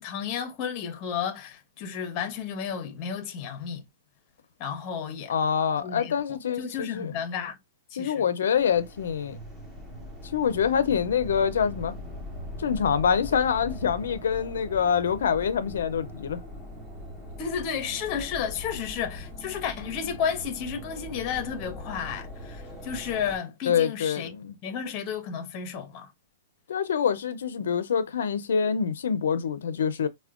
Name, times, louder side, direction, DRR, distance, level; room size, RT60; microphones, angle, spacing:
voice 1, 0.0-3.8 4.6-5.3 5.8-7.6 7.9-8.3 17.4-24.4 24.6-26.1, left 7 dB, 25° left, 0.7 m, -32 dB
voice 2, 5.3-7.1 8.0-9.4 10.3-11.9 12.6-16.4 23.7-24.6 26.7-30.1, left 7 dB, 85° left, 0.5 m, -25 dB
sound 1, 8.5-23.4, left 1 dB, 5° right, 0.7 m, -41 dB
4.2 x 2.1 x 2.4 m
hypercardioid pair, 175°, 0 cm